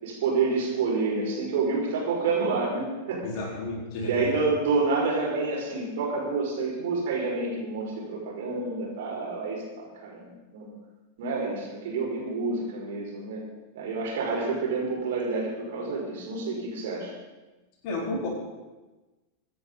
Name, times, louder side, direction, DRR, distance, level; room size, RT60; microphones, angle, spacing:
voice 1, 0.0-3.2 4.1-10.7 11.2-13.4 13.7-17.1, right 4 dB, 55° right, -3 dB, 5.7 m, -28 dB
voice 2, 3.2-4.4 17.8-18.3, left 2 dB, 45° left, -2 dB, 4.5 m, -32 dB
25.0 x 9.8 x 4.1 m, 1.1 s
figure-of-eight pair, 90°, 0 cm